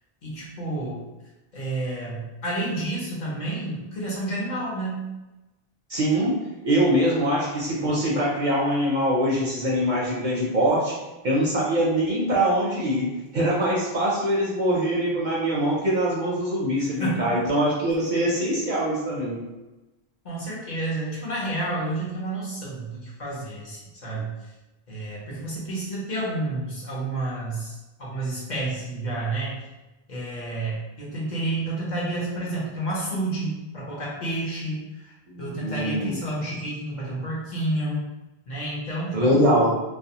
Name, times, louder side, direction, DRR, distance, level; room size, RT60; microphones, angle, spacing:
voice 1, 0.2-1.1 1.5-5.1 17.0-17.2 20.2-24.3 24.9-29.6 30.1-35.1 35.4-38.1 38.5-39.5, right 2 dB, 50° left, -6 dB, 0.9 m, -30 dB
voice 2, 5.9-6.4 6.6-10.9 11.2-19.4 35.3-36.3 39.1-39.7, equal, 60° right, -5 dB, 0.6 m, -23 dB
2.4 x 2.2 x 2.8 m, 1.1 s
omnidirectional pair, 1.0 m